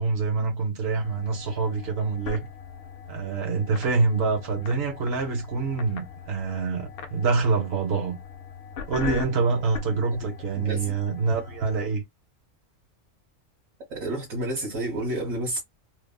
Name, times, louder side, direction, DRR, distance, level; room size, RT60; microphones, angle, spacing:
voice 1, 0.0-2.5 3.1-8.2 8.9-12.0, right 4 dB, 55° right, 1.2 m, -26 dB
sound 1, 1.0-11.9, left 6 dB, 60° left, 0.7 m, -40 dB
voice 2, 13.9-15.6, right 1 dB, 80° right, 1.7 m, -30 dB
3.4 x 2.1 x 2.3 m
omnidirectional pair, 1.3 m